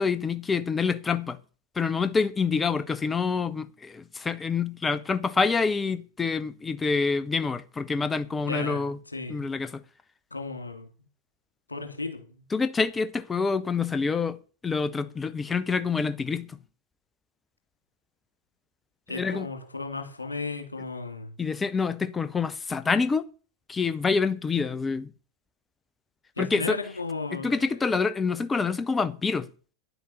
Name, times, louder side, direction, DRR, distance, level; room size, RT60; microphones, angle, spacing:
voice 1, 0.0-1.4 1.8-9.0 9.3-9.8 12.5-14.4 14.6-16.6 19.1-19.5 21.4-23.2 23.7-25.1 26.4-26.8 27.3-29.5, left 5 dB, 15° left, 0.9 m, -27 dB
voice 2, 8.4-9.5 10.3-10.9 11.7-12.3 19.1-21.3 26.4-27.7, left 3 dB, 80° left, 2.6 m, -35 dB
10.5 x 8.1 x 6.3 m
figure-of-eight pair, 90°, 0 cm